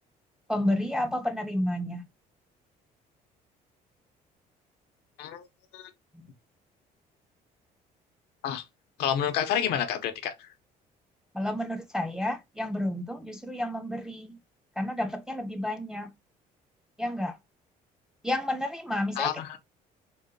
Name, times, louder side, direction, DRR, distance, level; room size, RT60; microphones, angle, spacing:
voice 1, 0.5-2.0 6.1-6.3 11.3-14.4 14.8-16.1 17.0-17.4 18.2-19.3, left 1 dB, 5° right, 0.3 m, -30 dB
voice 2, 9.0-10.3 19.2-19.6, left 9 dB, 85° left, 0.6 m, -29 dB
3.9 x 2.1 x 2.5 m
cardioid pair, 110°, 16 cm